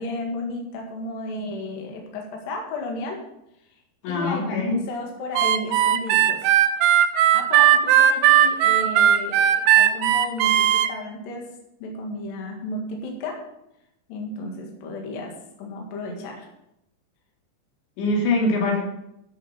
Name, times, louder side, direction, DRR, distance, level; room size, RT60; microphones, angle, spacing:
voice 1, 0.0-3.2 4.1-6.5 7.3-13.4 14.1-16.5, left 1 dB, 60° left, 0 dB, 3.1 m, -33 dB
voice 2, 4.0-4.8 18.0-18.8, left 2 dB, 75° left, -1 dB, 4.7 m, -23 dB
Harmonica, 5.3-10.9, right 10 dB, 80° right, 2.5 m, -17 dB
13.5 x 6.6 x 5.6 m, 0.83 s
omnidirectional pair, 5.3 m